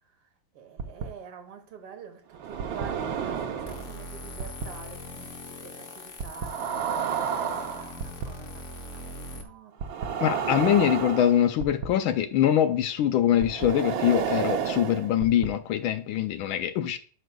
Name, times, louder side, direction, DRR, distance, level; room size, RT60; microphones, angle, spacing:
voice 1, 0.5-2.2 2.5-10.5, right 6 dB, 85° right, 2.2 m, -47 dB
sound 1, 0.8-1.0 2.3-3.9 4.4-4.7 6.2-8.3 9.8-11.9 13.4-15.5, right 7 dB, 70° right, 1.5 m, -30 dB
sound 2, 3.7-9.4, left 1 dB, 50° left, 0.9 m, -42 dB
voice 2, 10.2-17.0, left 10 dB, 75° left, 1.3 m, -23 dB
9.1 x 6.2 x 2.3 m
omnidirectional pair, 2.4 m